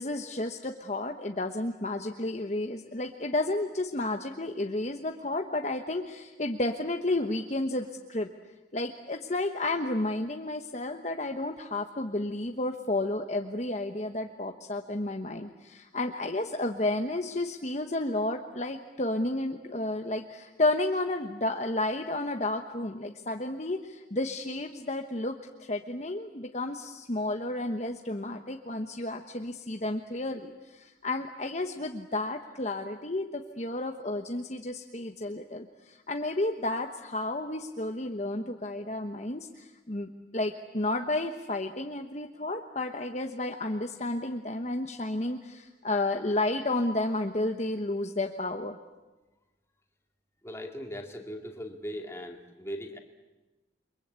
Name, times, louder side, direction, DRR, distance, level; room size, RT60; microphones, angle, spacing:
voice 1, 0.0-8.3 8.7-48.8, left 2 dB, 40° left, 4 dB, 1.2 m, -32 dB
voice 2, 50.4-53.0, equal, 15° left, 3 dB, 2.5 m, -39 dB
29.5 x 23.5 x 8.3 m, 1.1 s
head